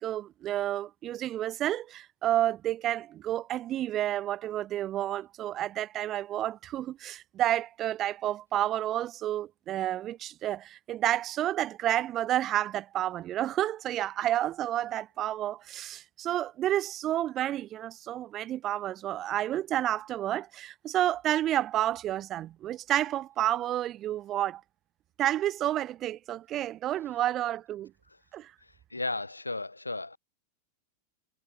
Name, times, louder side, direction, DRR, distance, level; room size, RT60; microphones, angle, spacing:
voice 1, 0.0-24.6 25.2-27.9 28.3-28.5, right 12 dB, 30° right, 1.9 m, -30 dB
voice 2, 28.6-30.2, left 2 dB, 85° left, 1.6 m, -35 dB
figure-of-eight pair, 90°, 0 cm